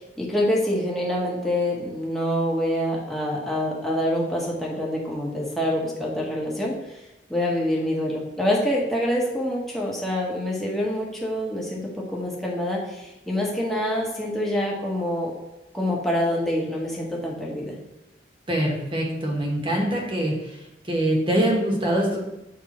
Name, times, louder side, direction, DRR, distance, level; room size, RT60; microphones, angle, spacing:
voice 1, 0.0-7.0 7.3-15.3 15.7-17.8, left 1 dB, ahead, -4 dB, 1.2 m, -26 dB
voice 2, 18.5-20.3 20.9-22.2, right 1 dB, 30° right, -1 dB, 1.3 m, -23 dB
7.6 x 3.5 x 4.2 m, 0.92 s
head